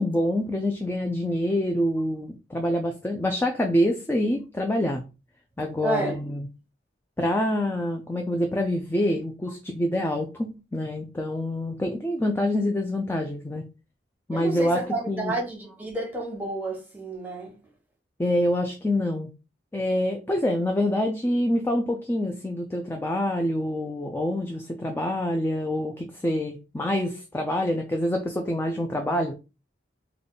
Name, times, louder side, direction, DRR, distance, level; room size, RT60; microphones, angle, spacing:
voice 1, 0.0-5.0 5.6-6.5 7.2-13.6 14.3-15.3 18.2-19.3 19.7-29.3, left 1 dB, 10° left, 0.4 m, -26 dB
voice 2, 5.8-6.2 14.3-17.5, right 2 dB, 10° right, 1.1 m, -30 dB
3.4 x 2.2 x 3.9 m
head